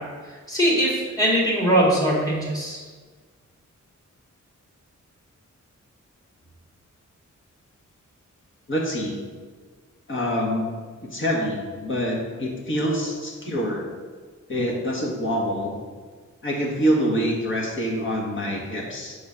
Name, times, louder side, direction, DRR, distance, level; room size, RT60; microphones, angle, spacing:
voice 1, 0.5-2.8, right 1 dB, 10° left, -4 dB, 1.8 m, -21 dB
voice 2, 8.7-9.2 10.1-10.7 11.1-13.9 14.5-15.8 16.4-19.2, equal, 40° left, -2 dB, 1.5 m, -25 dB
5.3 x 3.8 x 5.6 m, 1.5 s
wide cardioid pair, 90°, 30 cm